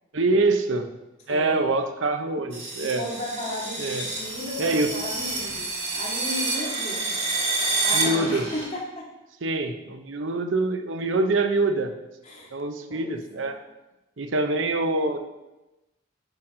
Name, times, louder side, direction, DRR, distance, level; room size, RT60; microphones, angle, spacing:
voice 1, 0.1-0.9 1.3-3.0 3.8-4.1 4.6-4.9 7.9-8.5 9.4-11.9 12.5-13.6 14.2-15.2, right 2 dB, 80° right, 7 dB, 0.7 m, -25 dB
voice 2, 1.3-1.7 2.8-7.1 7.8-9.1 12.2-12.5 12.9-13.6, left 1 dB, 35° left, -5 dB, 2.2 m, -35 dB
sound 1, 2.5-8.7, right 3 dB, 35° right, 1.8 m, -28 dB
8.8 x 5.9 x 3.8 m, 1.0 s
head